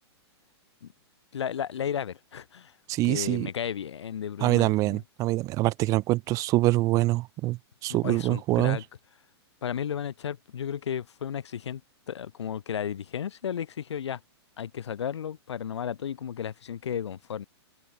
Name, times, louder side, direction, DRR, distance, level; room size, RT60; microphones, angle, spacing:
voice 1, 1.3-2.7 3.0-5.0 7.9-8.8 9.6-11.8 12.1-14.2 14.6-17.4, left 8 dB, 85° left, 1.5 m, -33 dB
voice 2, 2.9-3.5 4.4-8.8, right 18 dB, 25° right, 0.4 m, -25 dB
hypercardioid pair, 145°, 14 cm